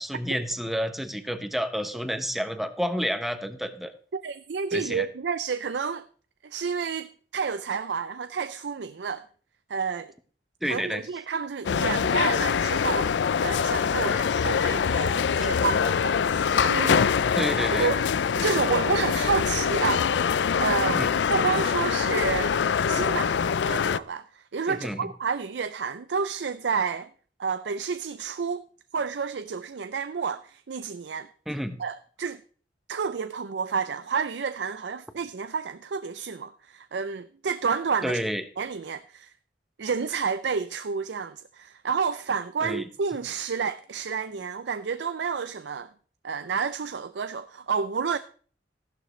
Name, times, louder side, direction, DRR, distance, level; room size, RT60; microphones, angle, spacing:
voice 1, 0.0-3.9 4.7-5.1 10.6-11.0 17.4-17.9 20.8-21.1 24.7-25.1 31.5-31.8 38.0-38.4 42.6-42.9, equal, ahead, 1.0 m, -30 dB
voice 2, 4.1-6.1 6.4-9.3 9.7-10.1 10.6-13.1 13.4-17.1 17.7-18.0 18.4-21.0 21.3-22.6 22.9-27.1 27.4-28.6 28.9-31.3 31.8-32.4 32.9-38.2 38.6-39.3 39.8-45.9 46.2-48.2, right 5 dB, 80° right, 0.5 m, -30 dB
sound 1, 11.6-24.0, left 7 dB, 90° left, 0.4 m, -24 dB
15.0 x 11.5 x 3.2 m
head